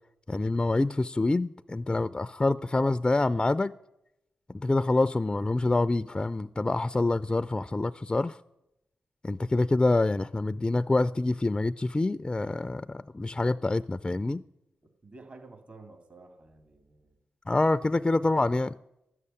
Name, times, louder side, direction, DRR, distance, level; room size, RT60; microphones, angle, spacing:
voice 1, 0.3-3.7 4.5-8.4 9.2-14.4 17.5-18.7, left 2 dB, 25° left, 0.4 m, -26 dB
voice 2, 14.8-17.2, right 3 dB, 50° right, 2.4 m, -51 dB
12.0 x 6.7 x 9.8 m
supercardioid pair, 40°, 3 cm